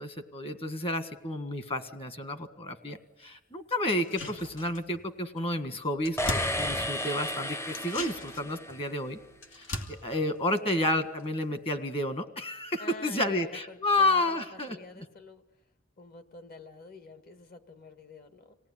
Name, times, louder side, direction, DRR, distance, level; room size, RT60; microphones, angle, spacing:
voice 1, 0.0-9.2 9.5-15.0, left 1 dB, 30° left, 9 dB, 1.7 m, -31 dB
sound 1, 3.9-5.1 5.4-5.5 5.7-7.2 7.7-11.4 11.7-11.8, left 2 dB, 80° left, 2.5 m, -40 dB
sound 2, 6.2-9.0, left 1 dB, 15° left, 0.7 m, -33 dB
voice 2, 12.8-15.4 16.0-18.6, left 2 dB, 50° left, 8 dB, 1.9 m, -47 dB
26.0 x 18.0 x 9.9 m, 1.2 s
head